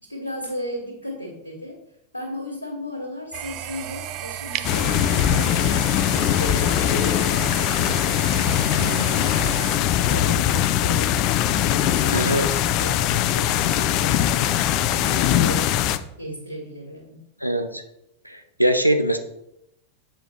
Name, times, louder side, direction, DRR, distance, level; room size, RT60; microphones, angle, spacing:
voice 1, 0.1-1.8 2.1-5.6 6.1-8.0 8.6-11.1 11.5-14.6 15.0-15.9 16.2-17.2, left 1 dB, 85° left, -2 dB, 1.6 m, -35 dB
sound 1, 3.3-9.8, right 12 dB, 40° right, 0.4 m, -34 dB
sound 2, 4.6-16.0, left 11 dB, 40° left, 0.4 m, -21 dB
voice 2, 12.1-12.5 17.4-17.8 18.2-19.2, right 1 dB, 90° right, 6 dB, 0.7 m, -22 dB
7.8 x 4.5 x 4.3 m, 0.81 s
figure-of-eight pair, 90°, 0 cm